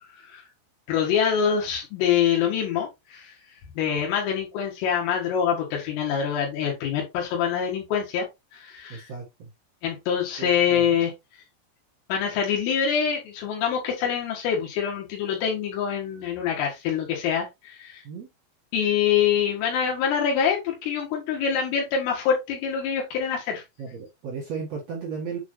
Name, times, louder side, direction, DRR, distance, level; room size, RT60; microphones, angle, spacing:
voice 1, 0.9-3.4 3.8-8.3 8.5-9.1 9.8-11.4 12.1-18.0 18.7-23.6, left 8 dB, 80° left, 4.3 m, -25 dB
voice 2, 8.9-9.2 10.4-10.9 18.0-18.3 23.8-25.4, right 5 dB, 70° right, 1.5 m, -34 dB
8.1 x 4.4 x 3.1 m
omnidirectional pair, 5.8 m